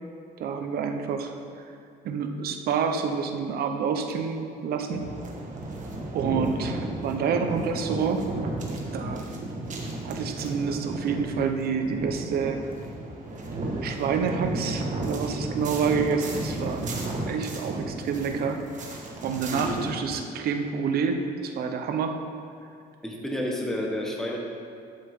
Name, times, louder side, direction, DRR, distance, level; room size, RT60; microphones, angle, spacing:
voice 1, 0.4-1.3 2.0-5.0 6.1-8.3 8.9-9.3 10.0-12.7 13.8-16.8 17.3-18.6 19.2-22.1, right 6 dB, 65° right, 5 dB, 1.0 m, -28 dB
sound 1, 4.9-19.9, right 2 dB, 50° right, 1.6 m, -33 dB
voice 2, 19.5-19.9 23.0-24.4, equal, 5° left, -1 dB, 1.6 m, -30 dB
12.0 x 7.6 x 3.8 m, 2.4 s
cardioid pair, 110°, 17 cm